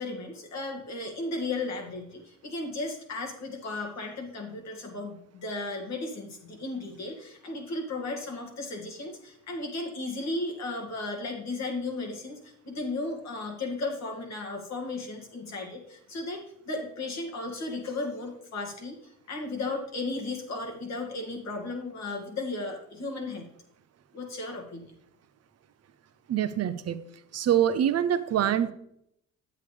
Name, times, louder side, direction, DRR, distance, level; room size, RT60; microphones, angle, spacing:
voice 1, 0.0-23.5 24.1-24.9, left 2 dB, 65° left, 1 dB, 2.2 m, -35 dB
voice 2, 26.3-27.0 27.3-28.7, right 10 dB, 55° right, 11 dB, 0.7 m, -25 dB
8.5 x 8.2 x 3.3 m, 0.74 s
cardioid pair, 90°, 30 cm